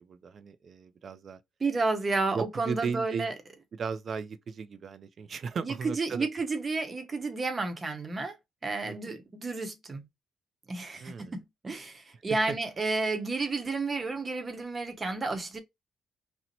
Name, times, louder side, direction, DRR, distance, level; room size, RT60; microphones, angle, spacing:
voice 1, 0.0-1.4 2.3-3.3 3.7-6.3 8.8-9.0 11.0-11.4 12.3-12.6, right 5 dB, 50° right, 0.4 m, -36 dB
voice 2, 1.6-3.3 5.6-8.4 8.6-10.1 10.7-15.6, right 3 dB, 30° right, 0.8 m, -31 dB
2.9 x 2.0 x 3.9 m
cardioid pair, 90°, 0 cm